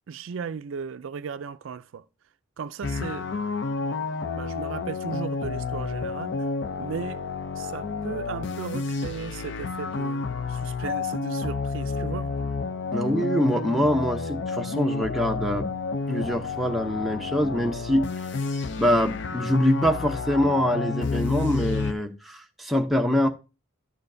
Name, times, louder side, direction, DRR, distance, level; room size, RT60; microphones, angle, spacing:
voice 1, 0.1-2.0 2.6-4.0 4.3-6.4 6.8-7.2 7.6-12.3, right 6 dB, 65° right, 0.4 m, -36 dB
sound 1, 2.8-21.9, left 4 dB, 55° left, 0.5 m, -30 dB
voice 2, 12.9-15.7 16.1-18.1 18.8-23.3, equal, ahead, 0.6 m, -24 dB
11.5 x 6.9 x 2.6 m
head